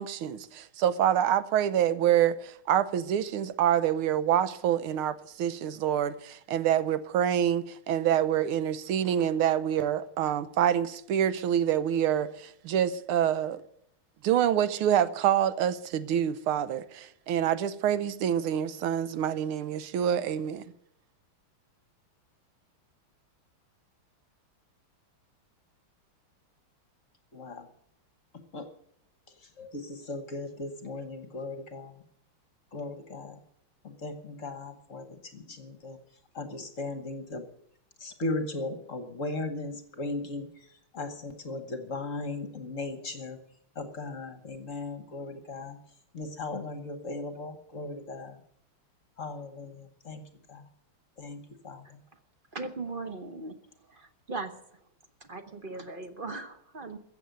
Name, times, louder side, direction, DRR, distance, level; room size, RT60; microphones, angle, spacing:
voice 1, 0.0-13.6 14.2-20.6, right 10 dB, 90° right, 1.7 m, -26 dB
voice 2, 27.3-27.7 28.5-28.7 29.3-32.0 32.7-33.4 33.8-36.0 36.3-37.5 38.0-43.4 43.7-45.8 46.1-48.4 49.2-50.7 51.2-52.0, left 2 dB, 45° left, 1.4 m, -37 dB
voice 3, 52.5-53.6 53.9-54.5 55.2-57.0, right 3 dB, 35° right, 0.9 m, -38 dB
15.0 x 7.7 x 9.2 m
omnidirectional pair, 2.3 m